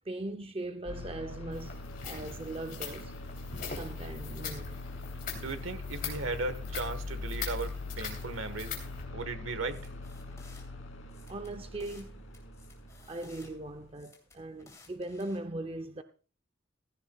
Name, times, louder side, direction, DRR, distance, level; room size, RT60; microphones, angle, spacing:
voice 1, 0.1-1.8 2.0-3.2 3.7-4.8 11.3-12.2 13.1-16.0, right 2 dB, 30° right, 0.6 m, -39 dB
sound 1, 0.9-13.9, left 2 dB, 85° left, 2.5 m, -42 dB
sound 2, 1.5-9.0, left 6 dB, 45° left, 2.9 m, -43 dB
voice 2, 5.3-8.7 9.1-9.9, right 3 dB, 85° right, 1.3 m, -36 dB
sound 3, 9.7-10.6 11.1-12.1 12.3-13.5 13.9-15.4, left 3 dB, 15° left, 2.8 m, -57 dB
16.0 x 15.0 x 2.3 m
head